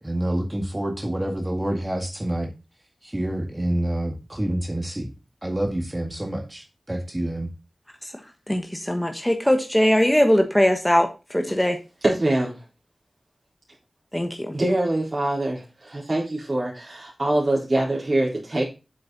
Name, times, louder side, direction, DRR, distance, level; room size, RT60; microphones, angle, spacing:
voice 1, 0.0-2.5 3.0-5.1 5.4-7.5, right 1 dB, 20° right, 3 dB, 1.9 m, -27 dB
voice 2, 8.5-11.8 14.1-14.5, equal, 10° left, 5 dB, 1.3 m, -21 dB
voice 3, 12.0-12.5 14.5-15.6 15.9-18.6, right 1 dB, 40° right, -5 dB, 4.2 m, -23 dB
8.0 x 6.6 x 4.1 m, 0.29 s
wide cardioid pair, 55°, 0 cm